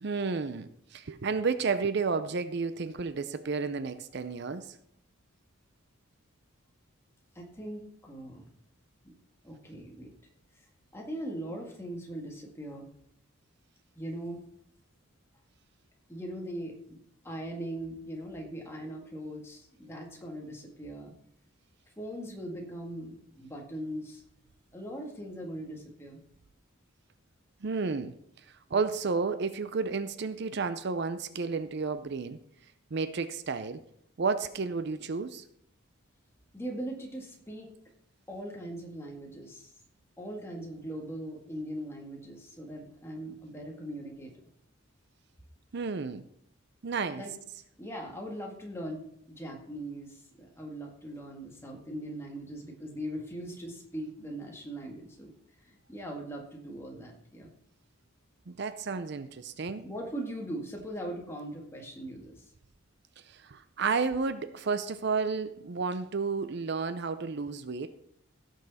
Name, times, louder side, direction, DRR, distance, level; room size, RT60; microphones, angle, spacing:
voice 1, 0.0-4.8 27.6-28.1 28.4-32.4 32.9-33.8 34.2-35.4 45.7-46.2 46.8-47.2 58.5-59.9 63.3-67.9, right 4 dB, 50° right, 12 dB, 0.5 m, -32 dB
voice 2, 7.4-8.5 9.0-9.1 9.4-10.1 10.6-12.9 14.0-14.4 16.1-17.0 17.2-21.1 22.0-24.2 24.7-26.2 36.5-37.7 38.3-39.7 40.2-44.3 47.2-47.3 47.8-55.3 55.6-57.5 59.8-62.5, right 1 dB, 10° left, 0 dB, 1.8 m, -40 dB
16.5 x 6.5 x 4.1 m, 0.71 s
head